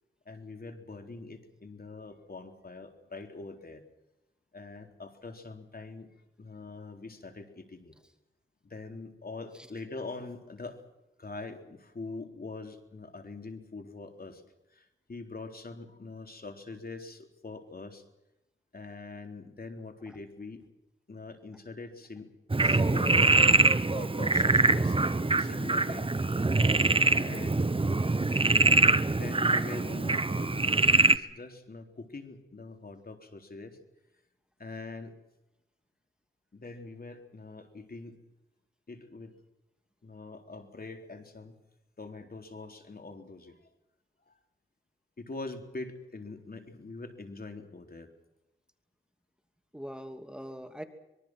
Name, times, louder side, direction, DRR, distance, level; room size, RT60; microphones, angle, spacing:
voice 1, 0.3-3.8 4.5-6.1 6.4-7.9 8.6-10.8 11.2-14.4 14.7-18.0 18.7-20.7 21.1-22.3 22.6-23.4 23.9-26.2 27.0-27.7 29.1-33.8 34.6-35.2 36.5-38.2 38.9-39.3 40.0-41.6 42.0-43.7 44.3-44.4 45.2-48.1, left 3 dB, 45° left, 5 dB, 3.7 m, -43 dB
Frog, 22.5-31.2, right 3 dB, 25° right, 1.1 m, -24 dB
voice 2, 49.7-50.8, equal, 5° right, 6 dB, 2.7 m, -44 dB
25.0 x 23.0 x 6.2 m, 0.91 s
cardioid pair, 65°, 21 cm